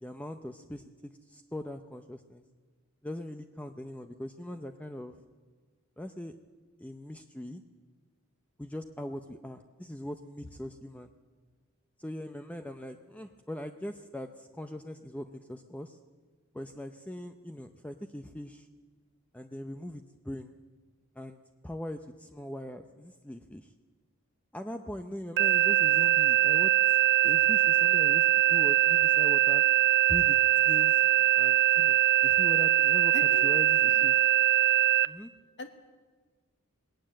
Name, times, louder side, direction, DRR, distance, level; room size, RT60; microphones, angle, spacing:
voice 1, 0.0-2.4 3.0-5.2 6.0-6.4 6.8-7.6 8.6-11.1 12.0-16.0 16.5-18.7 19.3-20.5 21.2-21.4 21.6-23.7 24.5-26.7 27.2-29.6 30.1-30.4 30.7-31.0 31.4-33.1 33.4-34.2 35.1-35.3, left 1 dB, 5° left, 7 dB, 0.6 m, -41 dB
sound 1, 25.4-35.1, right 13 dB, 55° right, 0.5 m, -22 dB
voice 2, 33.1-33.5 33.9-34.0 35.6-35.7, left 2 dB, 60° left, 7 dB, 1.2 m, -40 dB
19.5 x 18.0 x 7.6 m, 1.4 s
head